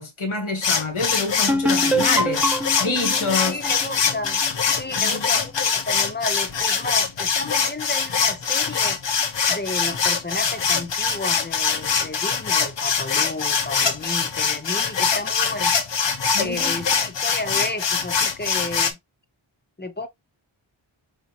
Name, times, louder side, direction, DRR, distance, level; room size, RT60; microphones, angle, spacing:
voice 1, 0.0-2.4 2.8-3.6 4.9-5.3 16.3-16.9, left 3 dB, 80° left, 1.5 m, -27 dB
sound 1, 0.6-18.9, left 6 dB, 60° left, 0.8 m, -23 dB
sound 2, 1.5-5.1, equal, 5° right, 0.4 m, -25 dB
voice 2, 3.5-4.4 4.7-9.0 9.5-15.7 16.4-19.0 19.8-20.1, left 2 dB, 20° left, 0.7 m, -32 dB
4.9 x 2.9 x 2.8 m
wide cardioid pair, 70°, 48 cm